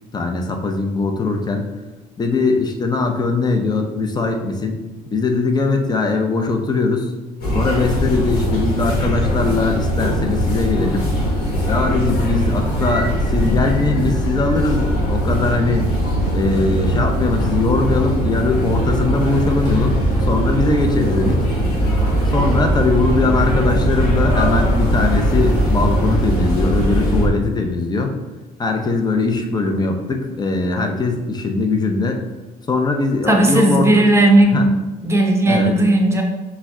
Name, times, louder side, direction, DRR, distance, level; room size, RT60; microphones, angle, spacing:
voice 1, 0.1-1.7 2.2-4.8 5.1-7.1 7.5-11.1 11.7-15.9 16.3-21.5 22.3-28.1 28.6-32.2 32.7-33.9 34.5-34.7 35.5-35.8, left 3 dB, 25° left, 4 dB, 0.6 m, -20 dB
sound 1, 7.4-27.3, equal, 65° left, 1.4 m, -20 dB
voice 2, 33.3-34.6 35.0-36.2, right 1 dB, 15° right, 2 dB, 0.7 m, -15 dB
5.7 x 2.2 x 3.6 m, 1.1 s
cardioid pair, 110°, 17 cm